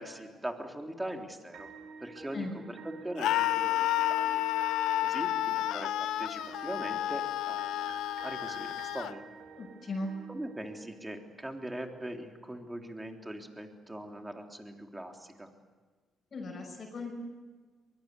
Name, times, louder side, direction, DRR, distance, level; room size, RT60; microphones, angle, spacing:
voice 1, 0.0-1.7 2.0-4.4 5.0-9.2 10.3-15.5, right 1 dB, 10° right, 3 dB, 3.4 m, -41 dB
sound 1, 1.5-11.6, right 4 dB, 65° right, 3.1 m, -49 dB
Screaming, 3.2-9.1, left 14 dB, 85° left, 0.6 m, -31 dB
voice 2, 9.6-10.1 16.3-17.1, left 2 dB, 45° left, 1 dB, 6.2 m, -37 dB
23.0 x 22.5 x 8.3 m, 1.4 s
cardioid pair, 90°, 0 cm